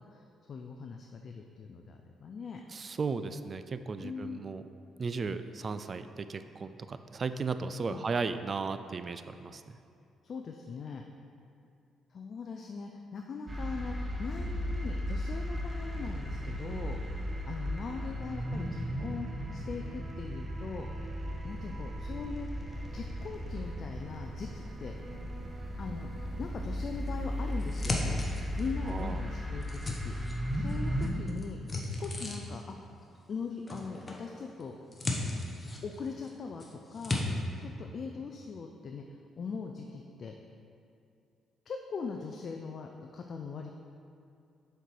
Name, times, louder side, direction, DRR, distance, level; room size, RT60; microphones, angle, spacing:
voice 1, 0.1-2.6 4.0-4.4 7.9-8.1 10.2-11.0 12.1-20.9 21.4-22.5 22.9-25.0 25.8-26.1 26.4-28.2 28.6-30.1 30.5-31.6 31.9-32.8 33.3-34.8 35.8-37.2 37.6-39.1 39.4-40.3 41.7-43.7, left 5 dB, 50° left, 3 dB, 0.4 m, -41 dB
voice 2, 2.7-4.6 5.0-9.8 28.9-29.2, right 4 dB, 40° right, 10 dB, 0.3 m, -35 dB
sound 1, 13.5-31.1, equal, 25° right, 0.9 m, -36 dB
sound 2, 14.4-26.4, right 2 dB, 55° right, 0.9 m, -53 dB
sound 3, 27.1-28.9 29.3-30.8 31.0-32.7 33.7-34.2 34.6-36.3 36.6-37.2, left 2 dB, 25° left, 0.9 m, -36 dB
6.5 x 4.5 x 4.7 m, 2.5 s
cardioid pair, 90°, 0 cm